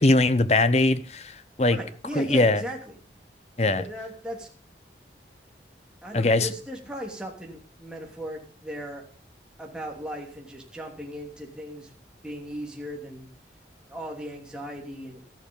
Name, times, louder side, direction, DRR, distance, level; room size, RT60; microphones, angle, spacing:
voice 1, 0.0-1.8 2.1-2.6 3.6-3.8 6.1-6.5, left 2 dB, 35° left, 14 dB, 0.9 m, -21 dB
voice 2, 1.7-2.9 3.8-4.5 6.0-9.0 9.6-11.9 12.2-13.3 13.9-15.2, equal, 5° right, 0 dB, 2.9 m, -37 dB
13.5 x 11.5 x 5.4 m, 0.43 s
head